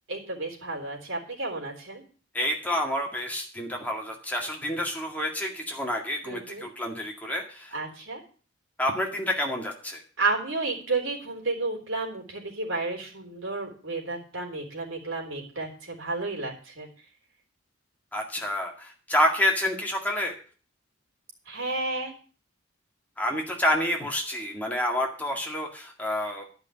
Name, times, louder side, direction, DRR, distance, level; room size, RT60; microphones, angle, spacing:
voice 1, 0.1-2.0 6.2-6.7 7.7-8.2 10.2-16.9 21.5-22.1, right 3 dB, 70° right, 0 dB, 3.7 m, -31 dB
voice 2, 2.3-7.8 8.8-10.0 18.1-20.3 23.2-26.4, left 1 dB, 10° left, 0 dB, 1.9 m, -28 dB
11.5 x 5.8 x 8.3 m, 0.40 s
head